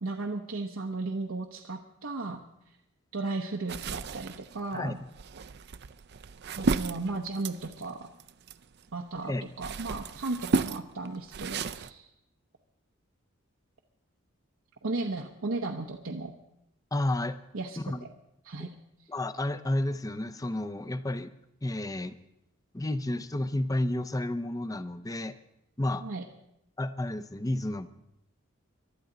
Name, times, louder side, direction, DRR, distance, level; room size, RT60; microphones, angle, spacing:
voice 1, 0.0-2.4 3.1-5.0 6.6-8.1 8.9-12.1 14.8-16.3 17.5-18.1 18.4-18.7 26.0-26.2, right 3 dB, 85° right, 1 dB, 0.9 m, -35 dB
sound 1, 3.7-8.9 9.3-11.9, right 4 dB, 50° right, 0.5 m, -33 dB
voice 2, 16.9-17.4 17.8-18.0 19.1-21.3 21.6-22.2 22.7-25.4 25.8-26.1 26.8-27.9, left 1 dB, 15° left, 13 dB, 0.6 m, -31 dB
23.0 x 12.5 x 3.9 m, 0.82 s
head